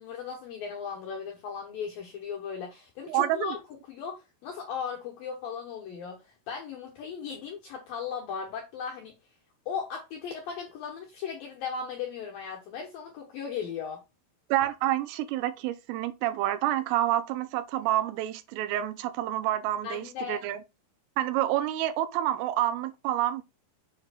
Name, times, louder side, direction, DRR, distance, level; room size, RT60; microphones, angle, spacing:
voice 1, 0.0-3.6 3.9-9.1 9.7-14.0 19.8-20.4, left 6 dB, 75° left, 2.1 m, -37 dB
voice 2, 3.1-3.6 14.5-20.6 21.2-23.4, right 13 dB, 85° right, 3.3 m, -28 dB
7.6 x 7.4 x 2.4 m
omnidirectional pair, 5.7 m